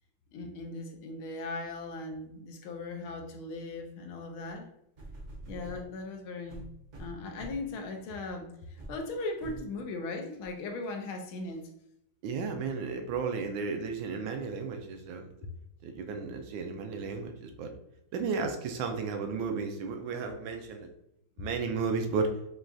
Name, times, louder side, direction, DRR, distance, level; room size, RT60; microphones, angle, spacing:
voice 1, 0.3-4.7 5.4-6.6 7.0-11.7, left 2 dB, 85° left, 4 dB, 1.5 m, -38 dB
sound 1, 5.0-5.9 6.5-7.7 8.2-8.4 8.8-9.0 9.4-9.7 10.4-10.5, right 2 dB, 50° right, 0.9 m, -45 dB
voice 2, 12.2-15.3 15.8-17.7 18.1-20.9 21.4-22.4, right 4 dB, 75° right, 5 dB, 1.3 m, -33 dB
6.1 x 2.2 x 2.6 m, 0.79 s
omnidirectional pair, 2.2 m